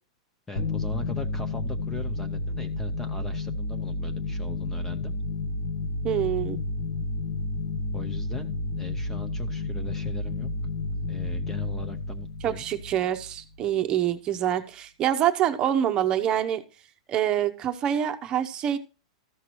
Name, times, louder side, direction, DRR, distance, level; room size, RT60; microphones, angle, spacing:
voice 1, 0.5-5.1 7.9-10.5 11.1-12.7, left 3 dB, 10° left, 8 dB, 0.6 m, -40 dB
sound 1, 0.6-13.7, left 2 dB, 75° left, 1.2 m, -31 dB
voice 2, 6.0-6.6 12.4-16.6 17.1-18.8, right 10 dB, 25° right, 9 dB, 0.8 m, -26 dB
14.0 x 5.9 x 3.0 m, 0.33 s
supercardioid pair, 155°, 3 cm